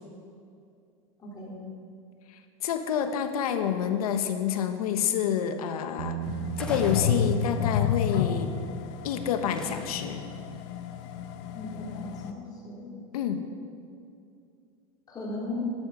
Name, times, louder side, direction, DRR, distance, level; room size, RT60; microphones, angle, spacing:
voice 1, 1.2-1.6 11.5-12.9 15.1-15.7, left 2 dB, 20° left, -5 dB, 3.9 m, -36 dB
voice 2, 2.3-6.2 6.6-8.5 9.0-10.3 13.1-13.4, left 8 dB, 85° left, 8 dB, 1.3 m, -28 dB
Bass guitar, 6.0-12.2, right 11 dB, 85° right, 0.9 m, -41 dB
sound 1, 6.2-12.3, left 8 dB, 55° left, 0.9 m, -31 dB
sound 2, 6.5-7.8 9.5-10.2, left 1 dB, 5° left, 1.2 m, -43 dB
12.5 x 11.0 x 6.4 m, 2.4 s
supercardioid pair, 145°, 19 cm